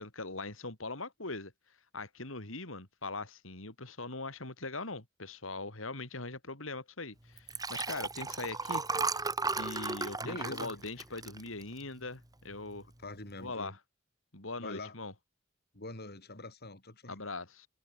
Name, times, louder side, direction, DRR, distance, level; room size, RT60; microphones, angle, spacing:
voice 1, 0.0-1.5 1.9-12.9 13.4-13.8 14.3-15.1 17.1-17.7, left 3 dB, 80° left, 4.4 m, -41 dB
Liquid, 7.4-12.0 12.5-12.8 13.0-13.1, right 3 dB, 20° right, 2.6 m, -35 dB
voice 2, 10.2-10.8 13.0-13.8 14.6-14.9 15.7-17.2, left 2 dB, 55° left, 5.2 m, -44 dB
head